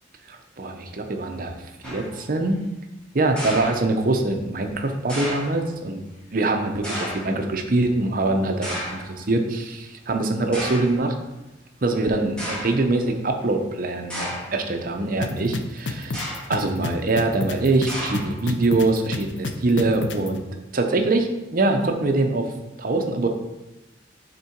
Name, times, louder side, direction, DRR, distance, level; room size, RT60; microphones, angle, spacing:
voice 1, 0.3-1.6 1.8-2.6 3.1-6.0 6.3-11.1 11.8-16.2 16.5-20.4 20.7-22.5 22.8-23.3, right 2 dB, 50° right, 4 dB, 0.7 m, -23 dB
sound 1, 1.8-2.2 3.4-4.3 5.1-5.6 6.8-7.4 8.6-9.2 10.0-10.1 10.5-11.0 11.8-11.9 12.4-12.9 14.1-14.6 16.0-16.6 17.9-18.5, equal, 5° left, 1.6 m, -32 dB
sound 2, 15.2-20.3, left 3 dB, 75° left, 0.5 m, -29 dB
6.7 x 3.7 x 4.4 m, 0.99 s
head